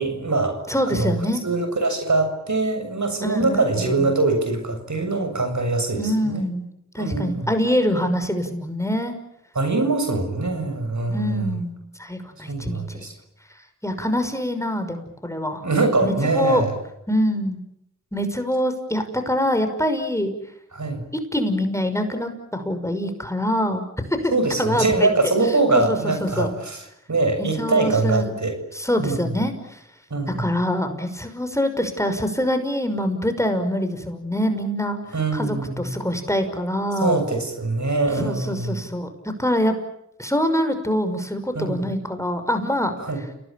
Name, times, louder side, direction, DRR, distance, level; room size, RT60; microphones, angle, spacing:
voice 1, 0.0-1.2 1.4-6.4 7.0-7.5 9.6-11.6 12.5-13.1 15.6-16.7 20.7-21.0 24.3-26.8 27.1-28.6 29.0-29.3 30.1-30.5 35.1-35.9 37.0-38.8 41.5-41.8 43.0-43.2, right 3 dB, 65° right, 6 dB, 7.2 m, -23 dB
voice 2, 0.7-1.4 3.2-4.1 6.0-6.7 6.9-9.2 11.1-13.0 13.8-15.7 16.0-16.6 17.1-17.6 18.1-20.3 21.3-23.9 24.2-24.3 24.6-25.1 25.7-26.6 27.4-28.2 28.7-29.8 30.3-35.0 35.3-37.2 38.2-39.1 39.4-39.7 40.2-42.9, equal, 10° left, 7 dB, 5.8 m, -24 dB
30.0 x 19.0 x 8.8 m, 0.81 s
cardioid pair, 45°, 32 cm